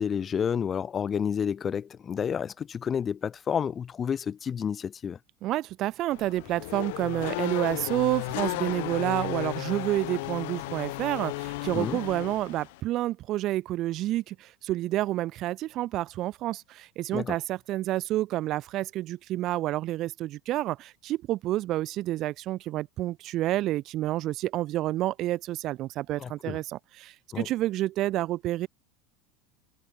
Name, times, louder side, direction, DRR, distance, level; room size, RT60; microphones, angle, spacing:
voice 1, 0.0-5.2 11.7-12.0 17.1-17.4 26.2-26.6 27.3-27.5, left 7 dB, 30° left, 2.2 m, -30 dB
voice 2, 5.4-28.7, right 15 dB, 45° right, 0.9 m, -29 dB
Race car auto racing / Accelerating revving vroom, 6.1-12.8, left 22 dB, 70° left, 0.8 m, -34 dB
supercardioid pair, 115°, 0 cm